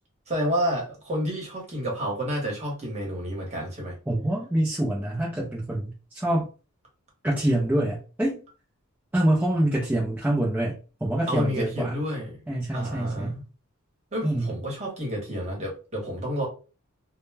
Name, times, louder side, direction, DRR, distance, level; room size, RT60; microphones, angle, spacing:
voice 1, 0.3-3.9 11.3-12.4 12.7-13.4 14.1-16.5, equal, 30° right, -2 dB, 1.0 m, -30 dB
voice 2, 4.1-6.5 7.2-8.4 9.1-12.0 12.5-13.4 14.2-14.5, right 1 dB, 10° right, -5 dB, 0.4 m, -26 dB
2.1 x 2.1 x 3.2 m, 0.34 s
head